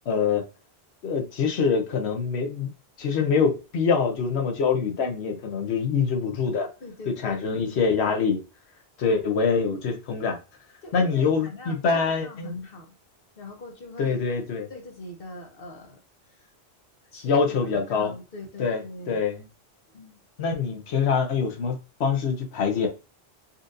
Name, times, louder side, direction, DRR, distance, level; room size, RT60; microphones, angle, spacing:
voice 1, 0.1-0.4 1.0-2.7 3.0-6.7 7.1-8.4 9.0-10.4 10.9-12.6 14.0-14.7 17.2-18.1 18.6-18.8 19.1-19.5 20.4-22.9, left 5 dB, 90° left, 1.0 m, -24 dB
voice 2, 6.8-7.5 9.0-9.2 10.8-12.9 13.3-14.3 14.7-16.5 17.1-19.2 19.9-20.2, left 2 dB, 60° left, 1.1 m, -42 dB
4.1 x 2.6 x 2.5 m
omnidirectional pair, 1.1 m